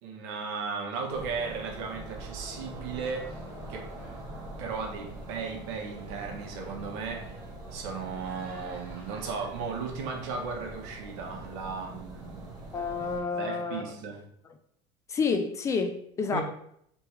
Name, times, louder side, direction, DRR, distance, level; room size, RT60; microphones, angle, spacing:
voice 1, 0.0-3.4 3.7-3.9 4.6-7.3 7.7-12.5 13.4-14.2 16.3-16.4, right 5 dB, 85° right, 1.1 m, -36 dB
sound 1, 1.1-13.2, right 2 dB, 25° right, 1.1 m, -43 dB
sound 2, 2.5-11.2, right 1 dB, 10° right, 1.4 m, -53 dB
voice 2, 12.7-13.8 15.1-16.4, left 5 dB, 20° left, 0.3 m, -29 dB
3.4 x 3.1 x 4.5 m
cardioid pair, 160°, 14 cm